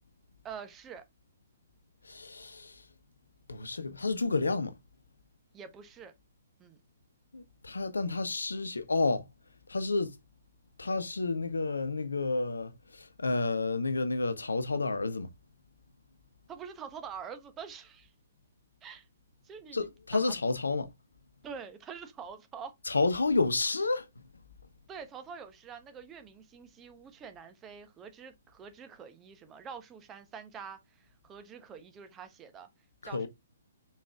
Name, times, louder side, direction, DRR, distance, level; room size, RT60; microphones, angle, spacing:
voice 1, 0.4-1.0 5.5-6.1 6.6-6.8 16.5-18.1 18.8-19.1 19.4-20.3 21.4-22.7 24.9-32.7 33.0-33.3, right 6 dB, 15° right, 1.1 m, -46 dB
voice 2, 2.0-2.8 3.5-4.7 7.3-9.3 9.7-10.1 10.8-15.3 19.7-20.9 22.9-24.2 33.0-33.3, left 3 dB, 70° left, 1.0 m, -30 dB
6.0 x 4.5 x 3.5 m
figure-of-eight pair, 125°, 0 cm